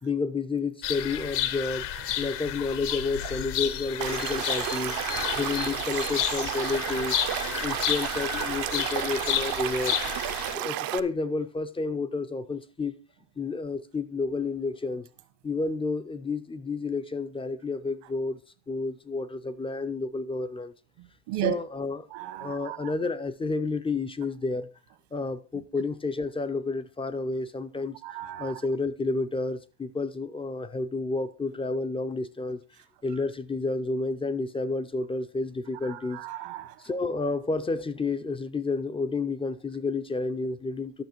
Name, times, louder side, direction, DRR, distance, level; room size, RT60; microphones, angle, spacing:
voice 1, 0.0-1.9 2.2-5.0 5.4-7.2 7.6-10.0 10.5-13.0 13.4-15.1 15.4-18.4 18.7-20.7 21.4-22.1 22.4-24.7 25.1-28.0 28.4-32.6 33.0-36.2 36.8-41.0, left 3 dB, 10° left, 0.4 m, -30 dB
sound 1, 0.8-10.6, left 11 dB, 55° left, 0.9 m, -31 dB
Stream / Liquid, 4.0-11.0, right 14 dB, 45° right, 0.6 m, -32 dB
voice 2, 4.7-5.4 10.0-10.1 21.3-21.5 22.1-22.8 28.0-28.5 35.8-36.7, right 13 dB, 75° right, 1.5 m, -35 dB
12.0 x 6.2 x 4.5 m
cardioid pair, 120°, 50 cm